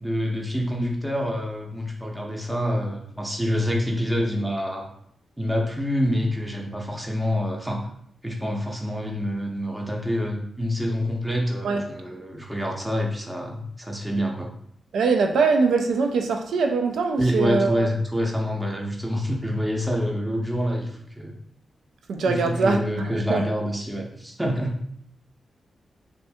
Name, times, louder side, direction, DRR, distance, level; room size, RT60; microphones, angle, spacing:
voice 1, 0.0-4.9 5.4-7.9 8.2-14.5 17.2-21.3 22.3-24.8, equal, 10° right, 0 dB, 0.6 m, -27 dB
voice 2, 14.9-17.9 22.1-23.4, right 4 dB, 90° right, 4 dB, 0.3 m, -22 dB
2.6 x 2.5 x 3.4 m, 0.67 s
cardioid pair, 80°, 0 cm